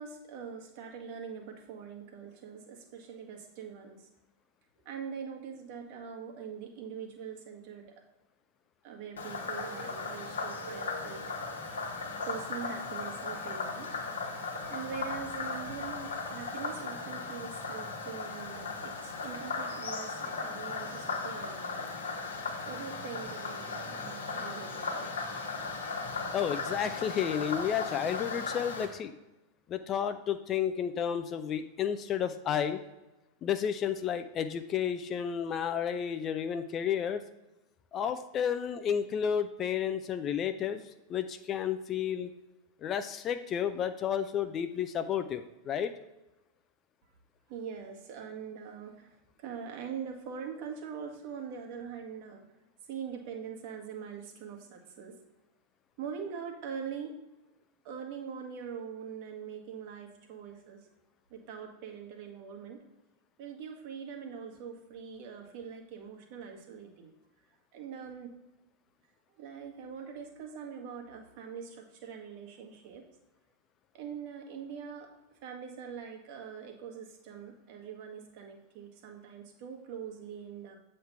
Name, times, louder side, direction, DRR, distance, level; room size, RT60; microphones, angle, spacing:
voice 1, 0.0-4.1 4.8-7.9 8.8-11.2 12.2-13.9 14.7-22.0 22.7-25.2 47.5-52.4 52.9-55.2 56.0-57.1 57.8-60.9 61.3-62.8 63.4-67.1 67.7-68.4 69.4-73.0 73.9-75.2 75.4-80.8, right 7 dB, 45° right, 2 dB, 1.3 m, -43 dB
Frog, 9.2-28.9, left 4 dB, 70° left, 1.1 m, -37 dB
voice 2, 26.3-29.1 29.7-32.8 33.4-37.2 37.9-40.8 41.1-42.3 42.8-45.9, left 8 dB, 30° left, 10 dB, 0.4 m, -31 dB
7.8 x 3.2 x 5.5 m, 0.99 s
figure-of-eight pair, 90°, 0 cm